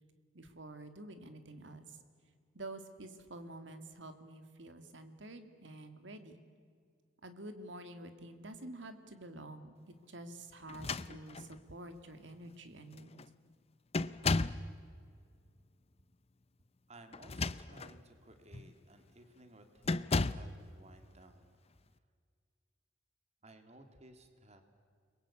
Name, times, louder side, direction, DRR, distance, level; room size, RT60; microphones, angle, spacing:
voice 1, 0.3-2.0 2.5-6.4 7.2-9.8 10.1-13.1, right 1 dB, 65° right, 8 dB, 2.3 m, -49 dB
sound 1, 10.7-11.6 12.5-12.6 12.9-13.3 13.9-14.7 17.1-18.0 18.5-18.7 19.8-20.5, left 3 dB, 30° left, 0.6 m, -34 dB
voice 2, 16.9-21.5 23.4-24.6, right 1 dB, 35° right, 7 dB, 2.3 m, -58 dB
30.0 x 22.0 x 8.6 m, 2.1 s
head